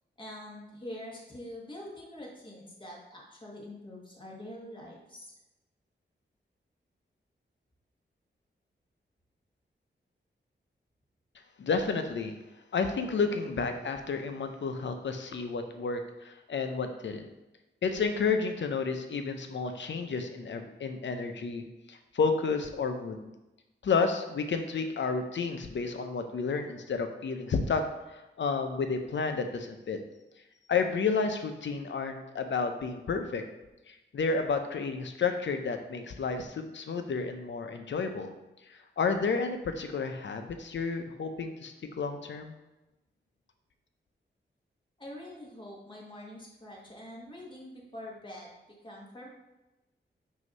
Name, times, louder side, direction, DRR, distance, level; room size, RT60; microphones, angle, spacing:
voice 1, 0.2-5.3 45.0-49.3, left 1 dB, 25° left, -3 dB, 1.7 m, -45 dB
voice 2, 11.6-12.4 12.7-17.3 17.8-23.3 23.8-27.8 28.1-30.0 30.7-33.4 33.9-38.3 38.7-42.5, left 4 dB, 75° left, 6 dB, 0.7 m, -31 dB
6.4 x 2.8 x 5.3 m, 1.0 s
wide cardioid pair, 105°, 19 cm